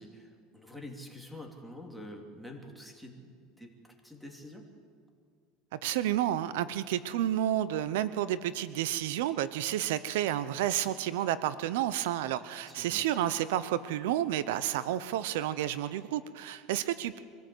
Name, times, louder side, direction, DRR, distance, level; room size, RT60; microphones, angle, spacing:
voice 1, 0.0-4.7 12.4-13.0, left 1 dB, ahead, 3 dB, 3.1 m, -47 dB
voice 2, 5.7-17.2, right 12 dB, 80° right, 15 dB, 0.8 m, -30 dB
25.0 x 15.5 x 8.0 m, 2.1 s
supercardioid pair, 125°, 0 cm